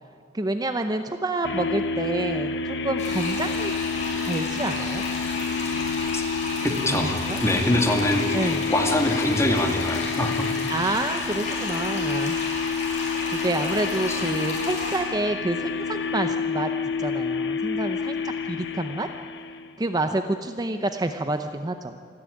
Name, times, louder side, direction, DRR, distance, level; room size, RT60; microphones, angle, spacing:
voice 1, 0.3-4.0 4.2-5.0 6.9-7.4 8.3-8.7 10.7-12.4 13.3-16.7 17.0-19.1 19.8-22.0, right 2 dB, 20° right, 7 dB, 0.6 m, -28 dB
sound 1, 1.4-19.7, left 5 dB, 70° left, 1.1 m, -29 dB
sound 2, 3.0-15.0, left 2 dB, 40° left, 5.9 m, -33 dB
voice 2, 6.6-10.5 14.1-14.2, left 1 dB, 15° left, 2 dB, 2.3 m, -24 dB
27.0 x 11.0 x 10.0 m, 2.4 s
head